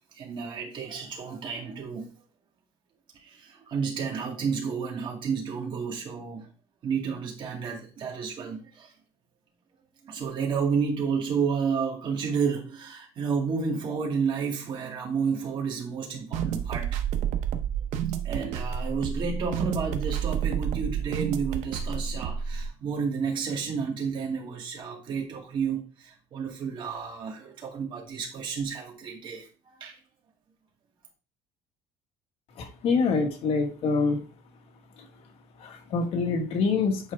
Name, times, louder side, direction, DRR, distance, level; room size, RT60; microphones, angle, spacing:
voice 1, 0.1-2.1 3.2-6.5 6.8-8.9 10.0-17.0 18.2-30.0, right 5 dB, 40° right, 2.4 m, -31 dB
sound 1, 16.3-22.7, right 8 dB, 70° right, 0.9 m, -30 dB
voice 2, 32.6-34.2 35.6-37.1, left 4 dB, 50° left, 1.7 m, -26 dB
8.9 x 4.5 x 3.5 m
cardioid pair, 150°, 13 cm